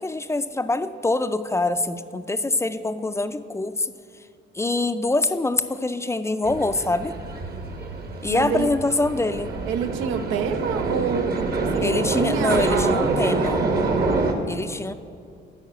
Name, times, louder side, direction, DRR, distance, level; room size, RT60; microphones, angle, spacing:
voice 1, 0.0-3.9 4.5-7.2 8.2-9.6 11.8-13.7 14.5-14.9, left 2 dB, 15° left, 11 dB, 0.4 m, -25 dB
sound 1, 6.4-14.3, right 3 dB, 50° right, 1.1 m, -26 dB
voice 2, 8.3-8.7 9.7-13.2, right 7 dB, 90° right, 9 dB, 0.6 m, -27 dB
9.3 x 4.8 x 7.8 m, 2.4 s
cardioid pair, 90°, 20 cm